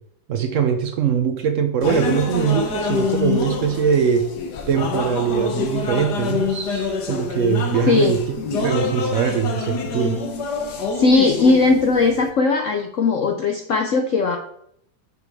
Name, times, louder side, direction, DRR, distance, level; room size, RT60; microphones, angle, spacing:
voice 1, 0.3-4.3 4.7-8.2 8.6-10.2, right 7 dB, 90° right, 6 dB, 0.6 m, -21 dB
sound 1, 1.8-12.3, left 5 dB, 60° left, 1.5 m, -26 dB
voice 2, 10.9-14.4, left 3 dB, 75° left, 4 dB, 0.7 m, -18 dB
6.6 x 5.1 x 4.8 m, 0.71 s
omnidirectional pair, 2.1 m